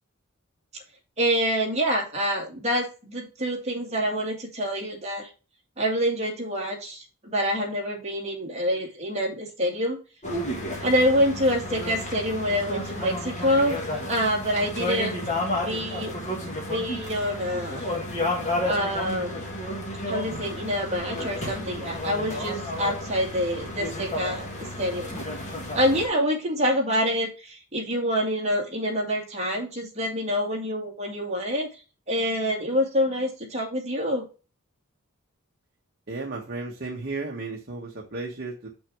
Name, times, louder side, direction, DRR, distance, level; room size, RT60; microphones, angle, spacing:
voice 1, 1.2-5.3 5.8-10.0 10.8-15.2 15.6-16.1 16.7-17.9 18.6-19.4 20.1-25.2 25.7-31.7 32.1-34.2, equal, 30° right, -1 dB, 2.2 m, -26 dB
sound 1, 10.2-26.1, left 1 dB, 35° left, 1.8 m, -32 dB
voice 2, 36.1-38.7, right 3 dB, 45° right, -2 dB, 1.2 m, -34 dB
6.3 x 6.1 x 3.5 m, 0.33 s
head